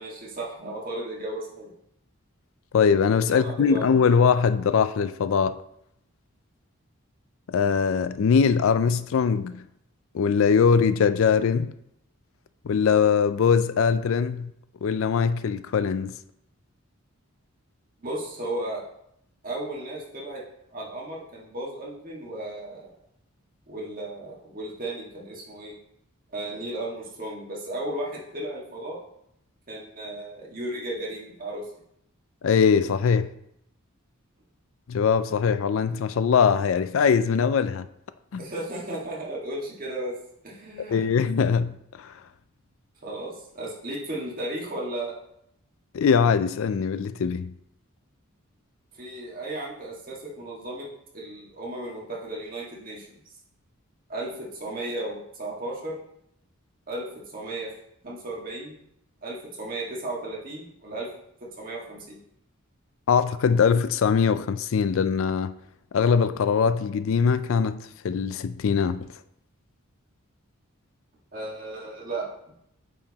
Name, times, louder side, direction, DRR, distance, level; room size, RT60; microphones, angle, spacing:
voice 1, 0.0-1.7 3.2-3.8 18.0-18.9 19.4-20.4 20.7-22.9 23.7-25.8 26.3-29.0 29.7-31.7 38.4-40.1 40.4-41.0 43.0-45.1 48.9-50.9 51.1-53.1 54.1-56.0 56.9-57.7 58.0-58.7 59.2-61.1 61.6-62.2 71.3-72.5, right 1 dB, 40° right, 1.7 m, -35 dB
voice 2, 2.7-5.6 7.5-9.6 10.1-11.7 12.6-14.5 14.8-16.1 32.4-33.3 34.9-37.9 38.3-38.4 40.9-42.1 45.9-47.5 63.1-65.5 65.9-69.1, left 6 dB, 65° left, 0.3 m, -22 dB
8.7 x 4.8 x 2.9 m
head